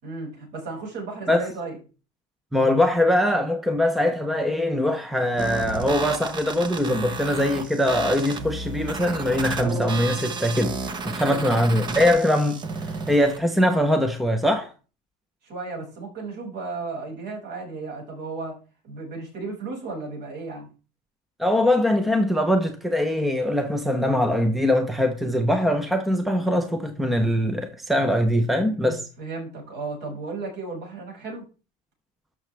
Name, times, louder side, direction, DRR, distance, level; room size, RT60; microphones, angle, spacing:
voice 1, 0.0-1.8 11.1-11.4 15.4-18.5 18.8-20.7 29.2-31.4, right 3 dB, 55° right, 6.1 m, -34 dB
voice 2, 2.5-10.8 11.1-12.6 13.1-14.7 21.4-29.0, left 1 dB, ahead, 0.7 m, -22 dB
sound 1, 5.4-13.4, right 4 dB, 25° right, 1.0 m, -32 dB
12.5 x 6.2 x 3.4 m
cardioid pair, 155°, 18 cm